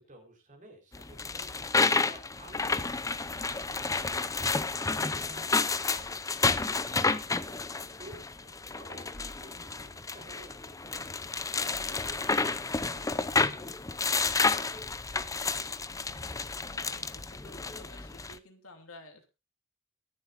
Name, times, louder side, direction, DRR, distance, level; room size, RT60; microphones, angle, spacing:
voice 1, 0.0-7.6 8.0-14.7, right 1 dB, 40° right, 3 dB, 4.2 m, -54 dB
sound 1, 0.9-18.4, left 4 dB, 15° left, 0.6 m, -31 dB
voice 2, 16.6-19.3, left 2 dB, 90° left, 5 dB, 2.9 m, -52 dB
22.5 x 7.6 x 2.6 m, 0.27 s
head